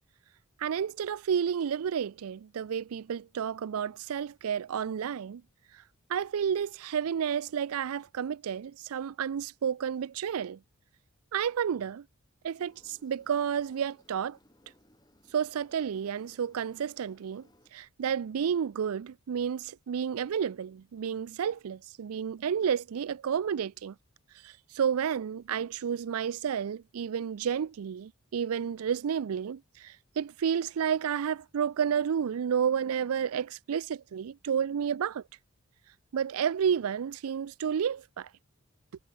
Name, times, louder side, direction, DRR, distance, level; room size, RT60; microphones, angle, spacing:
voice 1, 0.6-5.4 6.1-10.6 11.3-12.0 12.4-14.4 15.3-17.5 17.7-23.9 24.4-35.2 36.1-38.3, right 7 dB, 80° right, 0.4 m, -31 dB
Engine, 12.6-17.7, left 1 dB, 20° left, 5.2 m, -64 dB
head